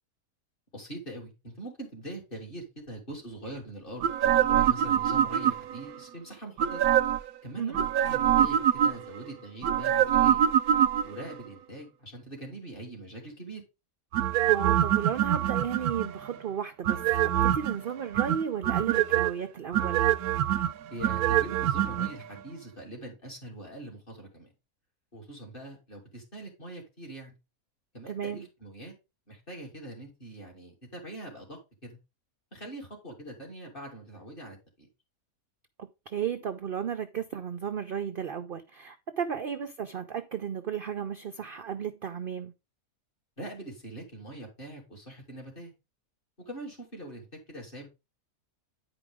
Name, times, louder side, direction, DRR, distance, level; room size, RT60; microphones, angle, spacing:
voice 1, 0.7-6.9 7.4-10.4 11.0-13.6 20.9-24.5 25.1-27.4 27.9-28.9 29.3-32.0 32.5-34.9 43.4-45.7 46.5-47.9, right 1 dB, 35° left, 3.0 m, -43 dB
sound 1, 4.0-5.8 6.6-7.3 7.7-9.2 9.6-11.3 14.1-16.3 16.8-17.8 18.1-19.3 19.7-22.1 22.4-22.5, right 11 dB, 80° right, 1.0 m, -24 dB
voice 2, 14.5-20.1 28.1-28.4 35.8-42.5, right 8 dB, 55° right, 0.6 m, -34 dB
9.8 x 5.0 x 3.6 m
omnidirectional pair, 1.6 m